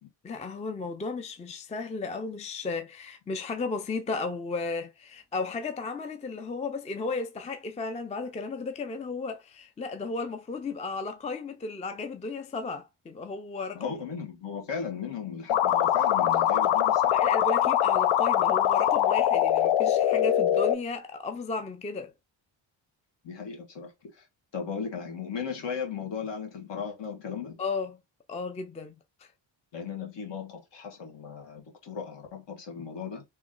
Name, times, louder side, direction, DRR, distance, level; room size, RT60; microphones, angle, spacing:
voice 1, 0.2-14.0 17.1-22.1 27.6-28.0 28.3-28.9 29.2-29.3, left 3 dB, 15° left, 0.4 m, -34 dB
voice 2, 13.7-17.2 23.2-24.3 24.5-27.6 29.7-33.2, left 6 dB, 60° left, 1.7 m, -36 dB
sound 1, 15.5-20.7, left 10 dB, 85° left, 0.7 m, -23 dB
3.1 x 3.1 x 3.7 m
cardioid pair, 125°, 47 cm